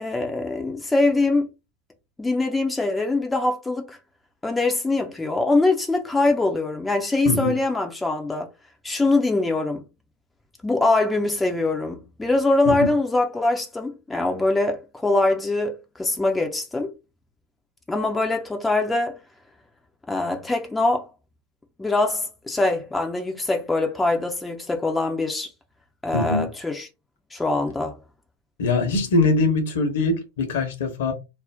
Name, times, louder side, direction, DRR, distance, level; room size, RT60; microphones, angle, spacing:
voice 1, 0.0-1.5 2.2-4.0 4.4-8.5 8.8-9.8 10.6-16.9 17.9-19.1 20.1-21.1 21.8-25.5 26.0-26.9 27.3-28.0, left 2 dB, 10° left, 0.5 m, -23 dB
voice 2, 26.1-26.5 28.6-31.1, left 3 dB, 55° left, 0.9 m, -22 dB
2.5 x 2.0 x 3.4 m
figure-of-eight pair, 90°, 0 cm